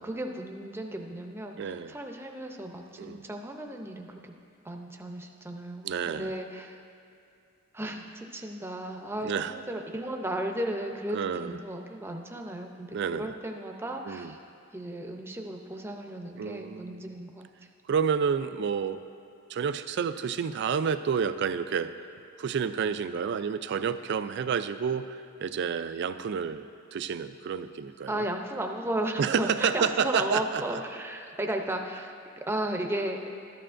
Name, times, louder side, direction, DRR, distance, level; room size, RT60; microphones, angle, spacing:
voice 1, 0.0-4.3 4.6-6.8 7.7-14.4 14.7-17.5 28.1-32.1 32.5-33.2, right 1 dB, 10° right, 2 dB, 0.6 m, -35 dB
voice 2, 1.6-1.9 3.0-3.2 5.8-6.3 9.2-9.5 11.1-11.6 12.9-13.3 14.1-14.3 16.4-17.1 17.9-19.0 19.5-22.1 22.4-26.7 26.9-28.2 29.2-30.8, right 6 dB, 55° right, 11 dB, 0.3 m, -29 dB
13.0 x 11.0 x 2.5 m, 2.4 s
head